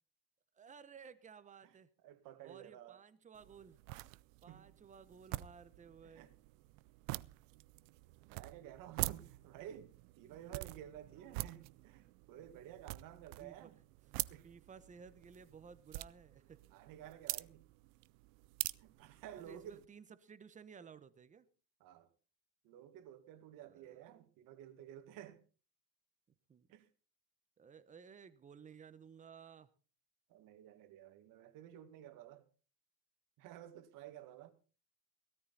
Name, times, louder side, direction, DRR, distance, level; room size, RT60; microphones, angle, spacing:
voice 1, 0.6-1.9 2.4-3.8 4.4-6.3 11.1-11.4 13.4-13.7 14.1-16.6 19.4-21.5 23.6-24.0 26.5-26.7 27.6-29.7, right 6 dB, 20° right, 1.0 m, -56 dB
voice 2, 2.0-3.0 4.5-4.7 6.0-6.3 8.2-13.8 14.3-14.5 16.7-17.6 18.8-19.8 21.8-22.1 22.6-25.4 26.7-26.9 30.3-32.4 33.4-34.5, right 11 dB, 55° right, 1.9 m, -53 dB
sound 1, 3.3-19.9, right 21 dB, 85° right, 0.6 m, -46 dB
17.0 x 13.5 x 4.1 m
cardioid pair, 145°, 38 cm